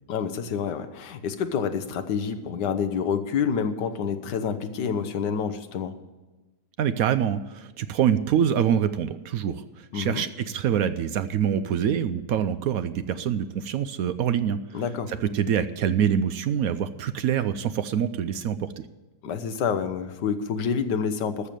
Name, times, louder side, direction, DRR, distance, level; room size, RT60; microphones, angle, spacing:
voice 1, 0.1-6.0 9.9-10.3 14.7-15.1 19.2-21.5, left 6 dB, 85° left, 10 dB, 1.5 m, -28 dB
voice 2, 6.8-14.6 15.1-18.8, right 9 dB, 70° right, 12 dB, 1.0 m, -25 dB
13.5 x 6.8 x 9.0 m, 1.1 s
omnidirectional pair, 1.8 m